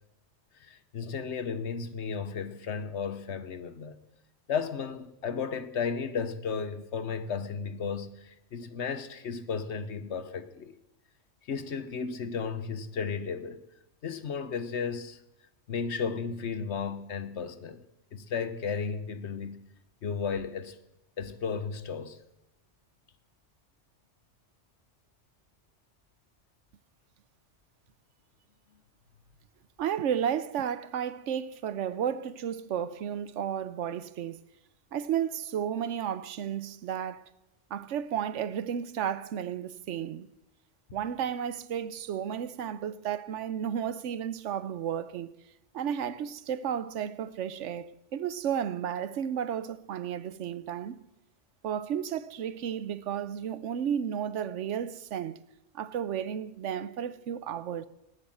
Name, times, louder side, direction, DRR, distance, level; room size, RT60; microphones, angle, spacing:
voice 1, 0.6-4.0 4.5-10.8 11.5-13.6 14.0-15.2 15.7-17.8 18.1-19.7 20.0-20.8 21.2-22.2, left 6 dB, 75° left, 1.3 m, -34 dB
voice 2, 29.8-34.4 34.9-37.2 37.7-40.3 40.9-45.3 45.7-51.0 51.6-55.4 55.7-57.9, right 9 dB, 85° right, 1.0 m, -33 dB
18.5 x 8.1 x 7.7 m
omnidirectional pair, 1.2 m